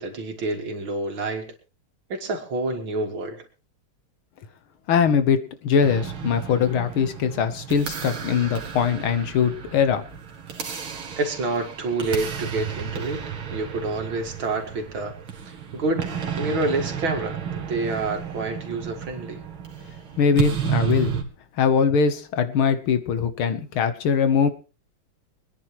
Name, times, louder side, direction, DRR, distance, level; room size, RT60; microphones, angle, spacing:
voice 1, 0.0-1.5 2.1-3.4 10.7-10.9 11.2-13.2 13.5-16.1 16.3-19.4, right 2 dB, 70° right, 4 dB, 2.9 m, -28 dB
voice 2, 4.9-10.0 20.2-21.1 21.6-24.5, left 6 dB, 85° left, 10 dB, 2.0 m, -21 dB
sound 1, 5.8-21.2, right 8 dB, 90° right, 2.6 m, -32 dB
24.5 x 10.0 x 3.1 m, 0.33 s
omnidirectional pair, 2.3 m